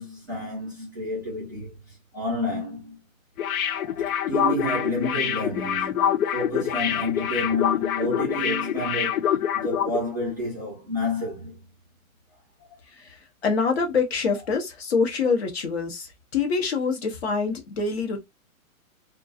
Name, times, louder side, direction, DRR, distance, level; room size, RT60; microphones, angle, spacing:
voice 1, 0.0-3.0 3.6-11.6, left 1 dB, 15° right, 0.5 m, -30 dB
sound 1, 3.4-10.0 10.3-10.4, left 9 dB, 85° left, 0.5 m, -25 dB
voice 2, 12.9-18.2, left 5 dB, 45° left, 0.8 m, -25 dB
2.4 x 2.2 x 2.5 m
hypercardioid pair, 160°, 42 cm